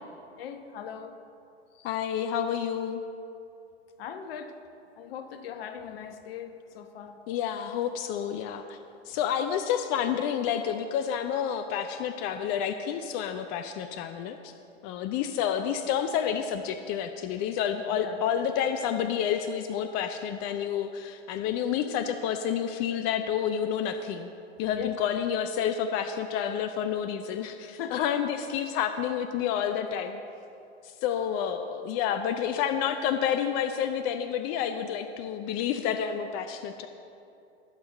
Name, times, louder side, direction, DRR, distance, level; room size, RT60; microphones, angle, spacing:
voice 1, 0.4-1.1 1.7-1.9 4.0-4.5 5.0-7.2 17.9-18.2 24.7-24.9 27.8-28.0 32.1-32.2, left 8 dB, 55° left, 8 dB, 1.1 m, -40 dB
voice 2, 1.8-3.0 7.3-8.8 9.1-14.5 14.8-24.3 24.6-30.2 30.8-36.9, left 8 dB, 25° left, 8 dB, 0.4 m, -29 dB
22.5 x 8.1 x 3.0 m, 2.7 s
hypercardioid pair, 110°, 35 cm